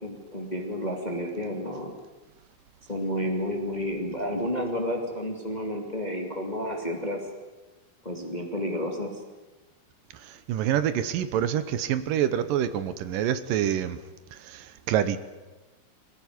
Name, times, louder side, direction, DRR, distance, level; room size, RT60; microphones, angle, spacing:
voice 1, 0.0-1.9 2.9-7.3 8.0-9.1, equal, 15° left, 2 dB, 1.7 m, -31 dB
voice 2, 10.5-14.0 14.5-15.2, right 10 dB, 70° right, 12 dB, 2.2 m, -26 dB
22.0 x 18.0 x 9.7 m, 1.2 s
omnidirectional pair, 4.9 m